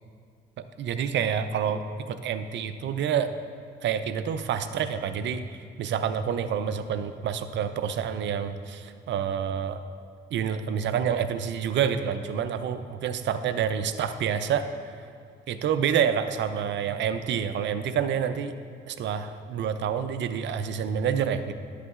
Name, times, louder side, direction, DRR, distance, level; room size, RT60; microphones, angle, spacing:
voice 1, 0.8-3.3 3.8-5.4 5.8-9.8 10.3-14.7 15.5-18.5 18.9-21.5, right 8 dB, 65° right, 10 dB, 0.5 m, -28 dB
10.5 x 8.1 x 2.4 m, 2.2 s
cardioid pair, 90°, 20 cm